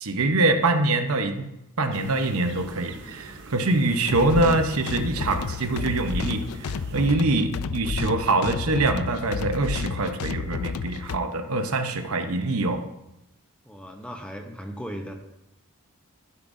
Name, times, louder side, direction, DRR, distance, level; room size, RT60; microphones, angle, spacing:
voice 1, 0.0-1.5 1.8-12.8, right 2 dB, 85° right, 6 dB, 1.0 m, -24 dB
sound 1, 1.9-7.1, right 2 dB, 55° right, 0.8 m, -44 dB
sound 2, 4.1-11.2, left 5 dB, 90° left, 0.4 m, -31 dB
voice 2, 13.6-15.1, equal, 5° left, 3 dB, 0.8 m, -37 dB
12.0 x 9.9 x 2.7 m, 0.87 s
head